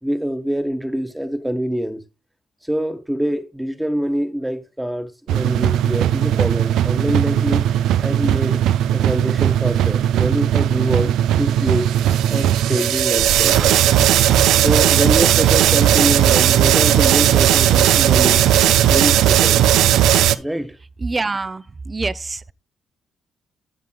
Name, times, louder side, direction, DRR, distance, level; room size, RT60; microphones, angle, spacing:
voice 1, 0.0-2.0 2.7-7.7 8.0-8.6 8.9-12.0 12.3-14.0 14.6-18.4 18.8-19.7 20.3-20.8, equal, 5° right, 1.2 m, -25 dB
sound 1, 5.3-20.4, right 11 dB, 90° right, 0.4 m, -16 dB
voice 2, 21.0-22.5, right 3 dB, 25° right, 0.5 m, -26 dB
15.5 x 5.1 x 2.3 m
cardioid pair, 90°, 0 cm